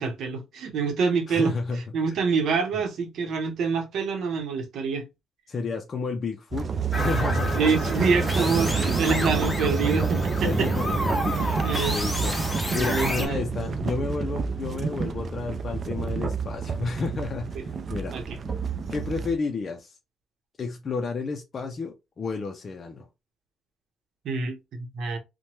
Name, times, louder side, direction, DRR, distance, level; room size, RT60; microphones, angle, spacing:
voice 1, 0.0-1.5 1.9-5.1 7.5-10.7 11.4-12.0 12.2-12.4 12.7-13.4 17.5-17.6 18.1-18.2 24.2-25.2, right 5 dB, 70° right, 0.8 m, -26 dB
voice 2, 1.3-1.8 5.5-6.7 6.9-7.6 8.4-8.5 10.4-10.9 11.2-11.6 11.9-12.4 12.7-18.2 18.9-20.0 20.6-23.1, left 4 dB, 45° left, 0.4 m, -31 dB
sound 1, 6.5-19.4, right 5 dB, 45° right, 0.4 m, -28 dB
sound 2, 6.9-13.3, left 1 dB, 10° left, 1.1 m, -31 dB
3.0 x 2.1 x 2.8 m
cardioid pair, 90°, 0 cm